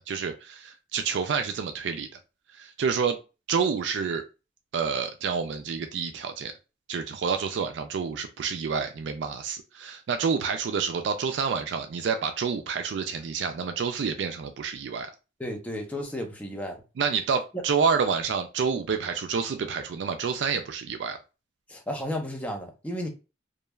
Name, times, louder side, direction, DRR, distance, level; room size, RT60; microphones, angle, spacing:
voice 1, 0.1-2.1 2.5-3.2 3.5-4.2 4.7-6.5 6.9-15.1 17.0-21.2, right 6 dB, 85° right, 0.3 m, -28 dB
voice 2, 15.4-16.8 17.5-17.6 21.7-23.1, equal, 10° left, 0.6 m, -33 dB
3.0 x 2.2 x 2.2 m
head